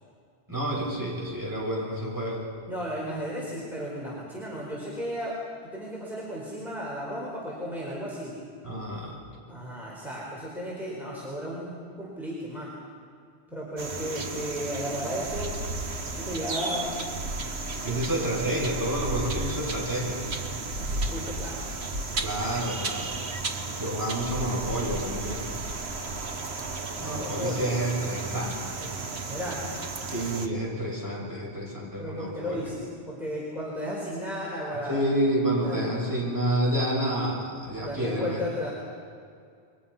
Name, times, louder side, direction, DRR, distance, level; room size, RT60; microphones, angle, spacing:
voice 1, 0.5-2.5 8.6-9.2 17.8-20.2 22.2-23.1 23.8-25.4 27.0-28.9 30.1-32.7 34.9-38.4, right 1 dB, 15° right, -5 dB, 7.1 m, -29 dB
voice 2, 2.7-5.4 5.6-8.3 9.5-12.8 13.5-15.5 16.0-17.0 20.8-21.6 27.0-27.7 29.2-29.6 32.0-35.0 35.6-35.9 37.8-38.7, equal, ahead, -5 dB, 4.6 m, -34 dB
sound 1, 13.8-30.5, right 3 dB, 75° right, 1.7 m, -33 dB
29.0 x 23.5 x 5.7 m, 2.3 s
omnidirectional pair, 1.1 m